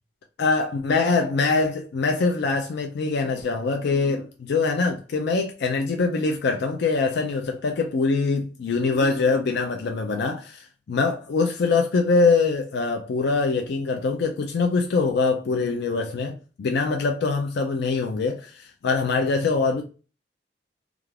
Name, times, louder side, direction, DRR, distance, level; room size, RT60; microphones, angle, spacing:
voice 1, 0.4-19.8, left 4 dB, 60° left, 0.4 m, -23 dB
2.4 x 2.4 x 3.1 m
head